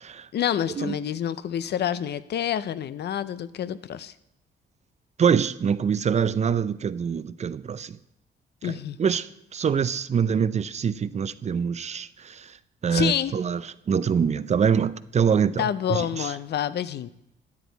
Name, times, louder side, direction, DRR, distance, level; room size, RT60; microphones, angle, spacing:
voice 1, 0.3-4.1 8.6-9.0 12.9-13.3 15.6-17.1, left 10 dB, 60° left, 0.6 m, -28 dB
voice 2, 5.2-8.0 8.6-12.6 12.8-13.6 13.9-16.3, right 7 dB, 35° right, 0.5 m, -25 dB
12.5 x 9.3 x 4.0 m
cardioid pair, 90°, 20 cm